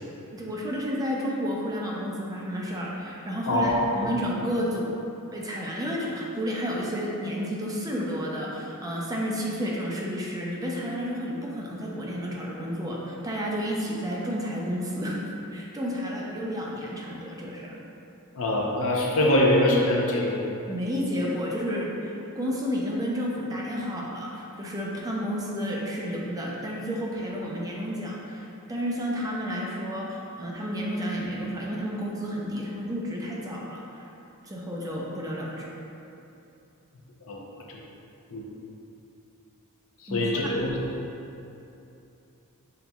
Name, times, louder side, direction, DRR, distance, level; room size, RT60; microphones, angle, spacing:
voice 1, 0.3-5.0 5.3-15.2 15.5-17.8 20.7-34.1 34.4-35.7 40.1-40.6, equal, 15° right, -4 dB, 0.5 m, -31 dB
voice 2, 3.5-4.1 18.3-20.4 37.3-37.4 37.7-37.8 38.3-38.5 40.0-40.8, left 1 dB, 65° left, -2 dB, 0.7 m, -23 dB
5.7 x 4.0 x 2.3 m, 2.8 s
head